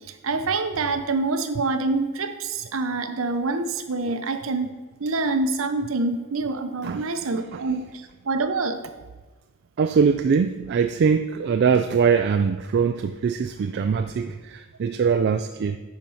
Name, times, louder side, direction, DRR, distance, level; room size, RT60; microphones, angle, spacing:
voice 1, 0.1-8.8, right 3 dB, 65° right, 8 dB, 0.7 m, -26 dB
voice 2, 6.8-7.6 9.8-15.8, right 6 dB, 50° right, 8 dB, 0.3 m, -22 dB
10.5 x 4.4 x 5.4 m, 1.2 s
head